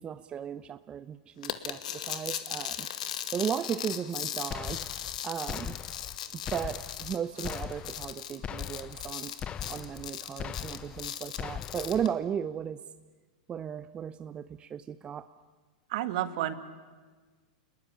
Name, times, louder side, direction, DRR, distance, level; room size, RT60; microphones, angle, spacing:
voice 1, 0.0-2.9 3.3-4.8 5.2-5.8 6.3-9.3 9.7-12.8 13.5-15.3, right 8 dB, 25° right, 13 dB, 0.8 m, -35 dB
sound 1, 1.4-12.1, left 10 dB, 70° left, 2.0 m, -38 dB
sound 2, 4.5-5.2 5.5-6.2 6.5-7.2 7.4-8.1 8.4-9.1 9.4-10.1 10.4-11.1 11.4-12.1, left 9 dB, 25° left, 0.8 m, -40 dB
voice 2, 15.9-16.5, right 13 dB, 60° right, 11 dB, 2.0 m, -30 dB
29.0 x 20.0 x 10.0 m, 1.4 s
hypercardioid pair, 105°, 4 cm